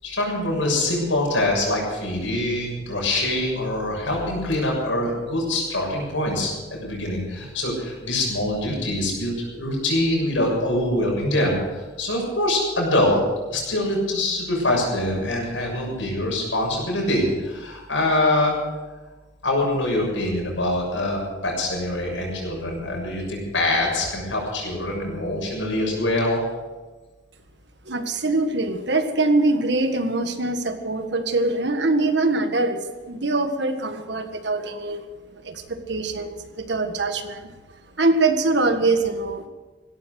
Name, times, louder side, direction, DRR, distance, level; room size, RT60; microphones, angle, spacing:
voice 1, 0.0-13.2 13.5-18.6 19.4-26.4, left 1 dB, 85° left, -2 dB, 7.0 m, -24 dB
voice 2, 27.9-32.8 33.1-35.0 35.4-37.5 38.0-39.4, right 2 dB, 65° right, 7 dB, 1.6 m, -23 dB
16.5 x 13.0 x 6.4 m, 1.2 s
head